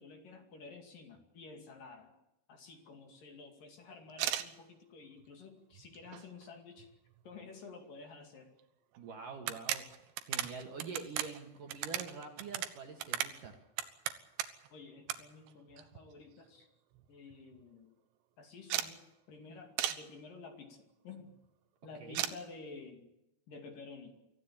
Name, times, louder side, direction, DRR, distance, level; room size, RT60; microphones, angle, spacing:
voice 1, 0.0-2.1 2.5-6.9 7.2-8.5 14.7-16.7 17.1-17.9 18.4-21.3 21.8-23.1 23.5-24.2, left 4 dB, 50° left, 4 dB, 3.7 m, -51 dB
sound 1, 4.1-4.5 5.2-5.3 5.7-6.5 6.8-6.9 7.1-7.2 8.6-8.7 8.9-9.0 9.4-14.7 15.1-15.2 15.5-16.3 16.6-16.7 16.9-17.1 17.3-17.6 18.7-18.9 19.8-20.0 22.1-22.4, right 12 dB, 75° right, 3.2 m, -37 dB
voice 2, 9.0-13.5 22.0-22.2, right 4 dB, 55° right, 4 dB, 2.8 m, -46 dB
25.0 x 15.5 x 8.7 m, 0.88 s
omnidirectional pair, 5.5 m